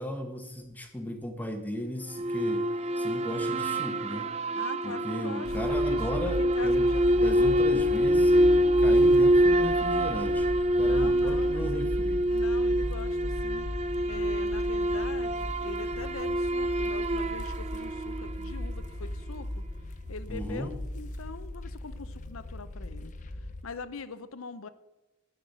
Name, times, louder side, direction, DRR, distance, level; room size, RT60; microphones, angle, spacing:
voice 1, 0.0-2.7 3.0-4.3 4.8-6.8 7.2-10.5 10.8-12.2 20.3-20.7, equal, 10° left, 5 dB, 1.0 m, -35 dB
sound 1, 2.1-18.7, right 1 dB, 30° right, 0.4 m, -26 dB
voice 2, 4.5-7.4 10.8-11.9 12.3-13.7 14.1-19.6 20.1-24.7, left 4 dB, 80° left, 13 dB, 0.7 m, -43 dB
sound 2, 5.4-23.6, left 1 dB, 35° left, 0.6 m, -37 dB
10.0 x 5.8 x 7.9 m, 1.0 s
head